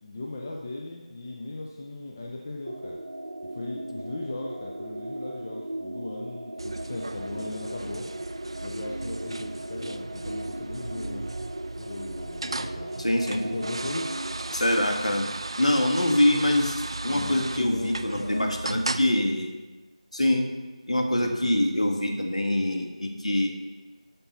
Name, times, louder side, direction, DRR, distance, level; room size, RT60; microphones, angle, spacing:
voice 1, 0.0-3.0 3.5-8.1 8.6-11.2 11.8-12.9 13.3-14.1 17.1-18.8 21.2-21.6, left 2 dB, 25° left, -1 dB, 0.6 m, -37 dB
sound 1, 2.7-14.5, right 1 dB, 70° right, 0.8 m, -37 dB
sound 2, 6.6-19.1, right 2 dB, 40° right, 0.4 m, -36 dB
voice 2, 13.0-13.4 14.5-15.3 15.6-19.5 20.1-20.5 20.9-23.5, left 1 dB, 60° left, 3 dB, 1.6 m, -24 dB
12.0 x 5.9 x 4.1 m, 1.2 s
figure-of-eight pair, 165°, 4 cm